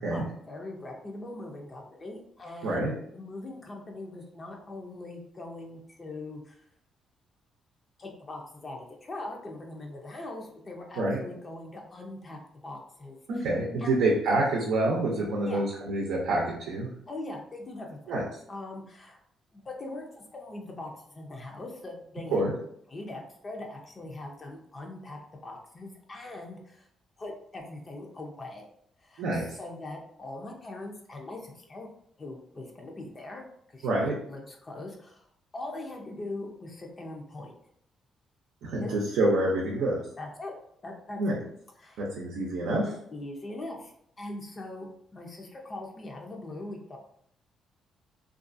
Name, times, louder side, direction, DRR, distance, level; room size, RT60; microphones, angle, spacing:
voice 1, 0.1-6.6 8.0-13.5 13.8-13.9 15.5-15.7 17.1-18.0 18.5-19.2 19.5-22.5 22.9-26.9 27.2-28.7 29.0-31.9 32.2-33.4 33.7-35.3 35.5-37.6 38.8-38.9 40.2-40.5 40.8-41.4 41.8-42.0 43.1-43.9 44.2-47.0, left 2 dB, 35° left, 1 dB, 0.5 m, -41 dB
voice 2, 2.6-2.9 11.0-11.2 13.3-16.9 18.1-18.2 22.3-22.5 29.2-29.5 33.8-34.1 38.6-40.0 41.2-41.4 42.0-42.9, right 2 dB, 85° right, -3 dB, 0.5 m, -27 dB
2.5 x 2.3 x 2.5 m, 0.69 s
cardioid pair, 90°, 0 cm